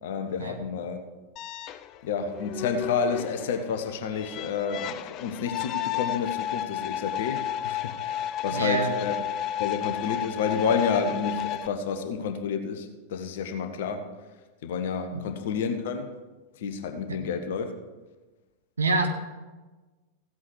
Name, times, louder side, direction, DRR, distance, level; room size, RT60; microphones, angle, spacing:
voice 1, 0.0-1.0 2.0-9.1 9.6-14.1 14.6-16.1 16.6-17.7, left 6 dB, 55° left, 6 dB, 1.1 m, -30 dB
sound 1, 1.4-11.7, left 11 dB, 35° left, 0.5 m, -33 dB
voice 2, 8.5-8.9 15.1-15.2 17.1-17.2 18.8-19.1, right 3 dB, 75° right, 4 dB, 1.4 m, -26 dB
15.5 x 8.3 x 4.7 m, 1.2 s
figure-of-eight pair, 90°, 0 cm